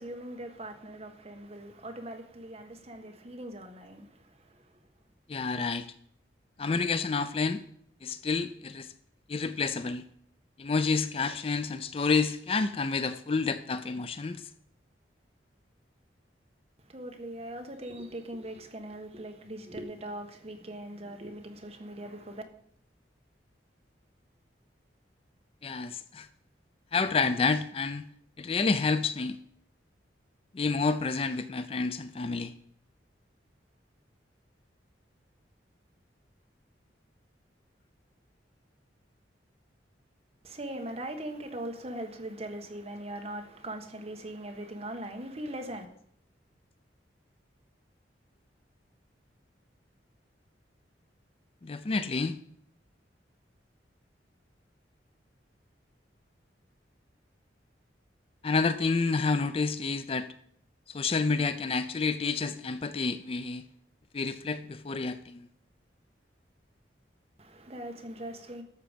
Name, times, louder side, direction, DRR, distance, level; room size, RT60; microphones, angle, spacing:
voice 1, 0.0-4.6 16.9-22.4 40.4-45.9 67.4-68.6, right 1 dB, 35° right, 1.4 m, -40 dB
voice 2, 5.3-5.8 6.6-7.6 8.0-8.9 9.3-10.0 10.6-14.4 25.6-26.3 26.9-28.0 28.4-29.4 30.5-32.5 51.6-52.3 58.4-60.3 60.9-63.6 64.1-65.4, left 4 dB, 30° left, 0.4 m, -29 dB
12.5 x 6.9 x 5.1 m
head